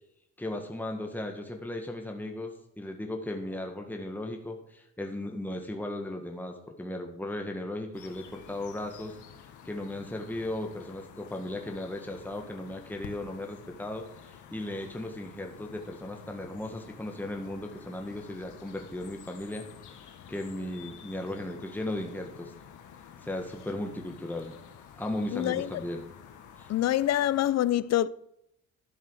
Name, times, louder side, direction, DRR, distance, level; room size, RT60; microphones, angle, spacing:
voice 1, 0.4-9.2 9.6-22.5 23.2-24.6 25.0-26.0 26.6-26.7, left 1 dB, 5° left, 1.8 m, -36 dB
sound 1, 7.9-27.5, left 8 dB, 80° left, 1.7 m, -50 dB
voice 2, 25.3-25.7 26.7-28.1, left 13 dB, 60° left, 0.6 m, -25 dB
12.5 x 7.4 x 6.4 m
cardioid pair, 90°, 30 cm